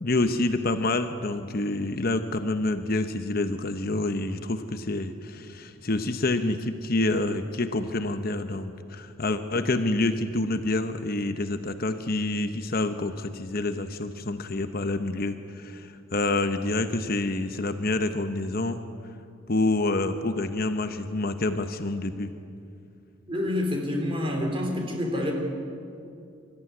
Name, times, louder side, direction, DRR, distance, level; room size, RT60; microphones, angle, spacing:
voice 1, 0.0-18.8 19.5-22.3, left 2 dB, 45° left, 8 dB, 0.9 m, -27 dB
voice 2, 23.3-25.3, left 1 dB, 25° right, 1 dB, 3.6 m, -27 dB
24.5 x 14.0 x 9.6 m, 2.5 s
head